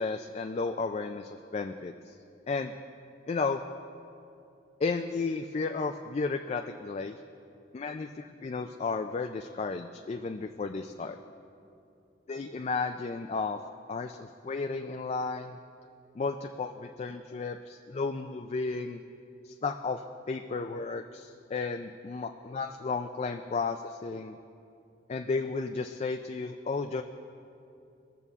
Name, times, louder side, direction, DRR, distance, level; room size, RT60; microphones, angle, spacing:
voice 1, 0.0-2.1 2.5-2.7 3.3-3.6 4.8-7.2 7.7-11.2 12.3-13.6 13.9-15.6 16.2-19.0 19.4-24.4 25.1-27.0, left 4 dB, 35° left, 5 dB, 0.3 m, -33 dB
19.5 x 6.9 x 3.6 m, 2.6 s
head